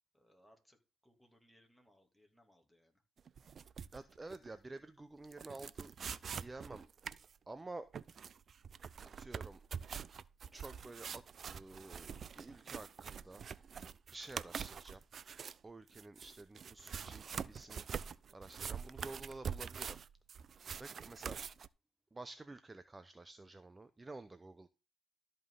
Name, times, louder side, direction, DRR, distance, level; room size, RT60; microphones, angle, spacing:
voice 1, 0.1-3.0 20.6-20.8, equal, ahead, 2 dB, 2.9 m, -69 dB
sound 1, 3.2-4.5 4.7-4.8 5.3-7.3 7.9-15.6 15.9-21.7, right 7 dB, 50° right, 0.5 m, -45 dB
voice 2, 3.9-5.9 6.4-6.9 7.5-7.9 9.1-9.6 10.5-13.4 14.1-15.0 15.6-17.8 18.3-20.0 20.8-21.4 22.1-24.7, right 2 dB, 20° right, 12 dB, 0.8 m, -50 dB
13.0 x 5.5 x 3.9 m, 0.30 s
cardioid pair, 90°, 0 cm